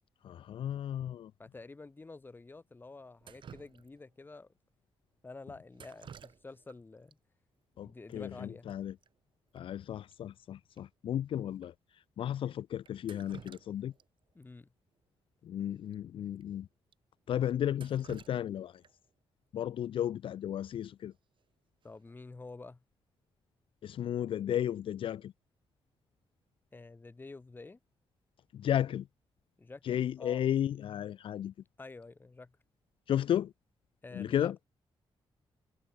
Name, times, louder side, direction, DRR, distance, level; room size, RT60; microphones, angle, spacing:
voice 1, 0.2-1.3 7.8-8.9 9.5-13.9 15.4-16.7 17.3-18.8 19.5-21.1 23.8-25.3 28.5-29.1 29.8-31.5 33.1-33.5 34.1-34.6, left 10 dB, 65° left, 0.4 m, -34 dB
voice 2, 1.4-4.5 5.2-7.2 7.8-8.7 14.3-14.7 21.8-22.8 26.7-27.8 29.6-30.4 31.8-32.5 34.0-34.5, left 3 dB, 20° left, 5.6 m, -49 dB
Drip, 3.2-4.2 5.7-6.8 7.1-7.2 8.1-8.2 8.5-8.7 9.0-9.1 9.6-9.7 10.1-10.2 10.8-10.9 11.6-11.7 12.8-14.1 14.4-14.5 15.8-15.9 16.4-16.5 16.9-17.0 17.5-19.1 21.1-21.4 21.8-22.2, right 8 dB, 60° right, 5.7 m, -53 dB
wide cardioid pair, 155°, 10 cm